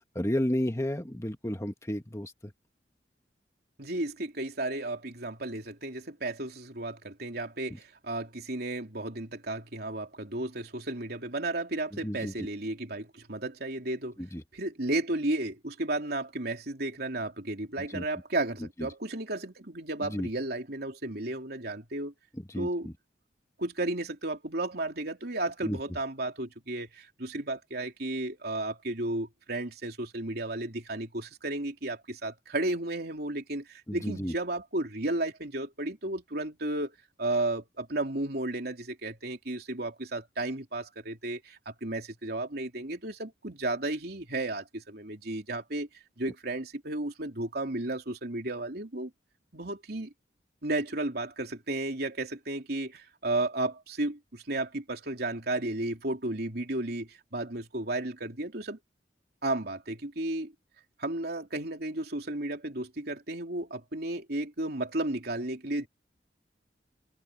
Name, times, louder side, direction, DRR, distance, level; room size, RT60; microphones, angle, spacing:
voice 1, 0.1-2.3 12.0-12.3 14.2-14.4 17.8-18.0 20.1-20.3 22.5-22.9 25.6-25.8 33.9-34.3, equal, 15° left, 1.5 m, -32 dB
voice 2, 3.8-14.2 14.5-22.1 22.6-22.9 23.6-36.9 37.2-45.9 46.2-49.1 49.5-50.1 50.6-58.8 59.4-60.5 61.0-65.9, right 2 dB, 60° right, 3.5 m, -33 dB
head